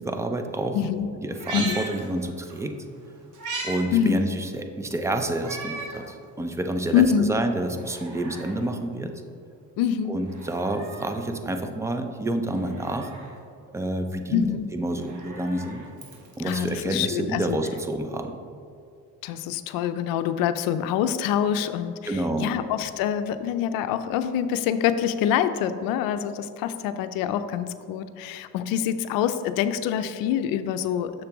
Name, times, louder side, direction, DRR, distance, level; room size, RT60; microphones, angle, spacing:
voice 1, 0.0-0.8 1.2-2.8 3.6-9.1 10.1-13.1 13.7-14.5 14.7-15.9 16.4-18.4 22.1-22.5, right 1 dB, 10° right, 6 dB, 0.4 m, -28 dB
voice 2, 0.7-1.1 1.5-1.8 3.9-4.2 6.9-7.3 9.8-10.2 14.3-14.7 16.4-17.6 19.2-31.2, left 9 dB, 80° left, 11 dB, 0.5 m, -25 dB
Meow, 1.3-2.6 3.0-3.8 4.2-4.3 5.4-6.1 6.6-6.7 7.6-8.6 10.2-11.2 12.5-13.4 14.8-16.5 17.7-17.8, right 3 dB, 60° right, 1.3 m, -38 dB
6.8 x 6.7 x 3.0 m, 2.5 s
cardioid pair, 115°, 34 cm